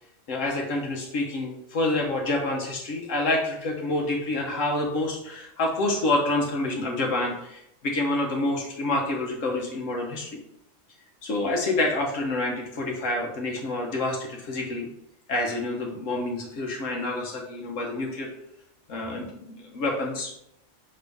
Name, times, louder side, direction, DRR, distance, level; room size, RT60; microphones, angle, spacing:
voice 1, 0.3-10.4 11.2-14.9 15.3-18.3 18.9-20.3, left 2 dB, 85° left, 0 dB, 1.4 m, -28 dB
6.3 x 3.5 x 5.3 m, 0.78 s
omnidirectional pair, 1.3 m